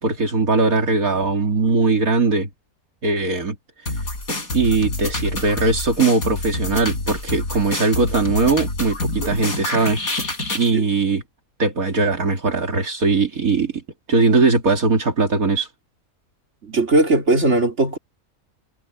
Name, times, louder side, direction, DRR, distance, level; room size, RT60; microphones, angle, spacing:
voice 1, 0.0-2.5 3.0-3.6 4.5-10.0 10.5-11.2 11.6-13.7 14.1-15.7, right 3 dB, 75° right, 2.9 m, -20 dB
sound 1, 3.9-10.7, left 2 dB, 85° left, 6.0 m, -27 dB
voice 2, 16.6-18.0, right 2 dB, 55° right, 3.7 m, -18 dB
omnidirectional pair, 1.5 m